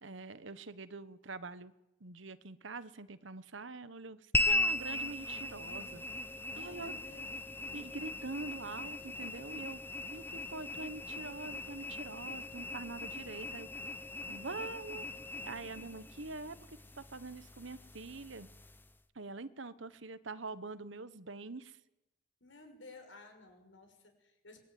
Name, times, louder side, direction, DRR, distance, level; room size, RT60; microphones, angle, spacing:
voice 1, 0.0-1.7 2.0-6.0 6.6-6.9 7.7-9.8 10.1-13.8 14.3-15.0 15.4-18.5 19.1-21.8, right 3 dB, 75° right, 14 dB, 1.2 m, -44 dB
sound 1, 4.3-19.0, left 2 dB, 10° left, 1.0 m, -39 dB
voice 2, 6.5-7.3 22.4-24.6, left 2 dB, 75° left, 6 dB, 6.2 m, -55 dB
26.5 x 21.5 x 9.4 m, 0.95 s
head